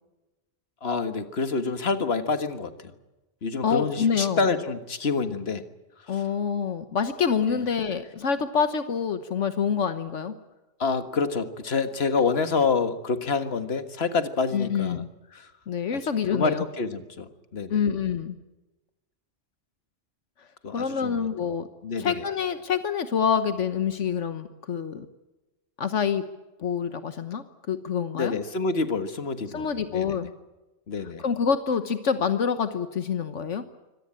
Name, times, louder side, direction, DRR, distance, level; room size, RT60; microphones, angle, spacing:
voice 1, 0.8-2.7 3.4-5.6 7.5-7.6 10.8-15.0 16.3-17.8 20.6-21.2 21.8-22.1 28.2-30.2 30.9-31.2, left 4 dB, 60° left, 10 dB, 1.8 m, -27 dB
voice 2, 3.6-4.5 6.1-10.3 14.5-15.1 15.7-16.7 17.7-18.4 20.4-20.5 20.7-21.7 22.0-25.1 25.8-26.2 26.6-28.3 29.5-30.3 31.0-33.6, left 7 dB, 80° left, 10 dB, 1.4 m, -26 dB
25.0 x 18.0 x 8.8 m, 1.1 s
omnidirectional pair, 1.2 m